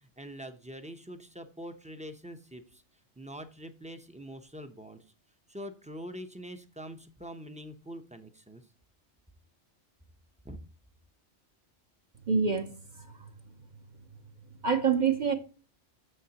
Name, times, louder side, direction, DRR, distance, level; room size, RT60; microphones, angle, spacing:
voice 1, 0.0-2.8 3.2-5.0 5.5-8.6 10.4-10.6, equal, 10° right, 0.6 m, -44 dB
voice 2, 12.2-13.3 14.6-15.3, right 6 dB, 45° right, 0.9 m, -27 dB
9.6 x 7.0 x 2.9 m
omnidirectional pair, 1.2 m